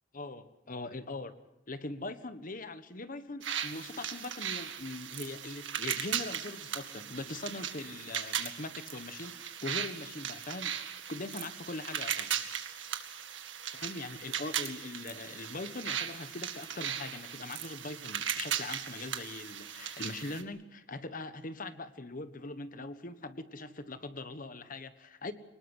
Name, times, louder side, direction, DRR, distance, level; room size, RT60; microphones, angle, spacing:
voice 1, 0.1-1.3 1.7-12.5 13.7-25.3, left 2 dB, 45° left, 11 dB, 1.4 m, -41 dB
sound 1, 3.4-20.4, right 9 dB, 80° right, 2.1 m, -38 dB
24.0 x 20.0 x 8.1 m, 0.86 s
head